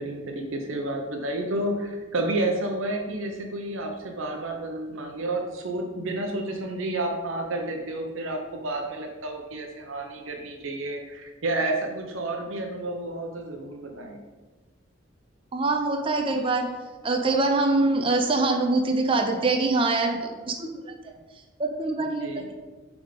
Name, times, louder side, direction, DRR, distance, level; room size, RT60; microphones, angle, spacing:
voice 1, 0.0-14.2 22.2-22.4, right 2 dB, 90° right, 2 dB, 0.8 m, -30 dB
voice 2, 15.5-16.7 17.0-20.9 21.6-22.5, right 3 dB, 25° right, 3 dB, 0.5 m, -24 dB
7.6 x 3.6 x 5.1 m, 1.3 s
head